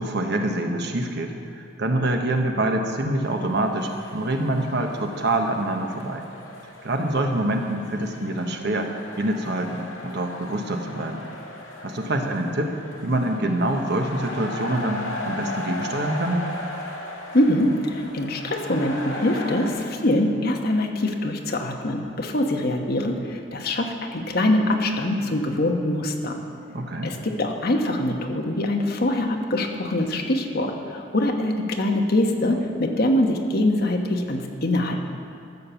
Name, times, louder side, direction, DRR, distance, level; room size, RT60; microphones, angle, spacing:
voice 1, 0.0-6.3 6.8-8.9 9.2-11.2 11.8-12.7 13.0-16.4 26.7-27.1, right 1 dB, 60° right, 4 dB, 1.2 m, -25 dB
sound 1, 3.2-19.7, left 1 dB, 85° left, 1.9 m, -37 dB
voice 2, 17.3-26.4 27.0-35.0, left 1 dB, 55° left, 3 dB, 1.2 m, -23 dB
13.5 x 7.4 x 7.0 m, 2.4 s
head